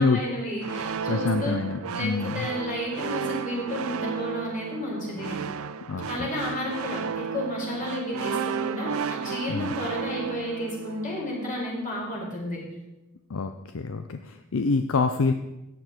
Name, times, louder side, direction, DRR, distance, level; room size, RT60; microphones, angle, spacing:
voice 1, 0.0-1.6 1.9-5.4 6.1-12.6, left 1 dB, 40° left, -3 dB, 4.5 m, -32 dB
sound 1, 0.6-11.5, right 6 dB, 85° right, 0.5 m, -33 dB
voice 2, 1.1-2.5 5.9-6.3 9.5-9.7 13.3-15.3, left 4 dB, 70° left, 8 dB, 0.6 m, -26 dB
14.0 x 9.1 x 4.4 m, 0.98 s
head